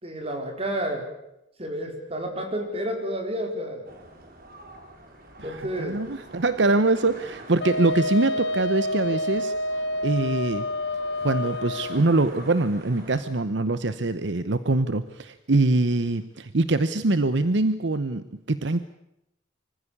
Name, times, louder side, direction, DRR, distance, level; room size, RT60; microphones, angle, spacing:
voice 1, 0.0-1.1 1.6-3.9 5.4-6.0, equal, 30° right, 3 dB, 4.7 m, -30 dB
sound 1, 3.8-13.2, right 1 dB, 50° right, 4.5 m, -46 dB
voice 2, 5.4-9.5 10.0-10.6 11.2-18.8, right 2 dB, 65° right, 13 dB, 0.9 m, -24 dB
Wind instrument woodwind instrument, 7.6-12.0, left 1 dB, 60° left, 1.1 m, -28 dB
25.0 x 15.5 x 9.8 m, 0.85 s
head